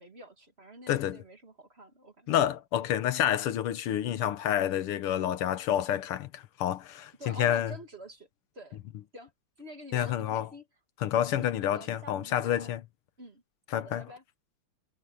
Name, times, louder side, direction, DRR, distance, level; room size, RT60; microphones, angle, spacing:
voice 1, 0.0-2.3 7.2-8.3 8.5-8.8 9.1-9.3 9.6-10.7 11.4-12.7 13.2-13.4 13.8-14.2, right 1 dB, 30° right, 2.5 m, -47 dB
voice 2, 0.9-1.2 2.3-7.7 9.9-10.5 11.0-12.8 13.7-14.1, left 11 dB, 85° left, 1.9 m, -28 dB
omnidirectional pair, 2.4 m